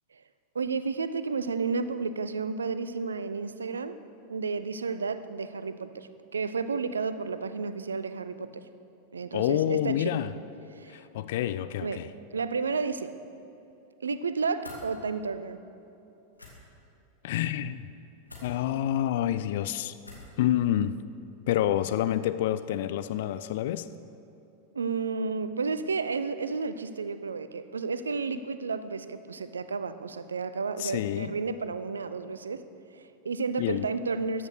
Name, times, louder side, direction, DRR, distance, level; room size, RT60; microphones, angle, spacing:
voice 1, 0.5-4.0 4.3-8.6 9.1-10.1 10.7-11.0 11.8-12.1 12.3-13.2 14.0-15.6 24.7-32.6 32.9-34.5, right 4 dB, 70° right, 12 dB, 0.6 m, -32 dB
voice 2, 9.3-10.3 10.9-12.1 17.2-17.8 18.4-20.0 20.4-21.0 21.5-23.9 30.8-31.3 33.6-33.9, left 12 dB, 55° left, 13 dB, 0.5 m, -28 dB
sound 1, 14.6-14.8 16.3-16.5 18.3-18.5 20.0-20.3, left 2 dB, 80° left, 2.6 m, -45 dB
14.5 x 10.5 x 6.6 m, 2.9 s
figure-of-eight pair, 90°, 0 cm